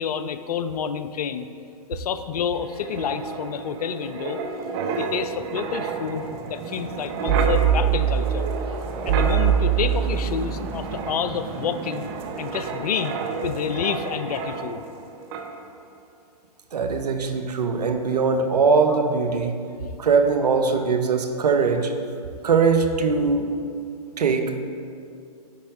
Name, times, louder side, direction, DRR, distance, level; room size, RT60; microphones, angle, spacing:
voice 1, 0.0-1.5 1.9-4.4 4.9-8.5 9.0-12.1 12.4-14.8, left 7 dB, 70° left, 11 dB, 0.5 m, -29 dB
Wind, 2.6-15.0 15.3-15.6, right 7 dB, 40° right, 0.7 m, -26 dB
voice 2, 16.7-19.6 20.0-21.9 22.4-23.5 24.2-24.6, right 5 dB, 75° right, 7 dB, 0.7 m, -21 dB
9.6 x 4.3 x 3.6 m, 2.4 s
hypercardioid pair, 115°, 20 cm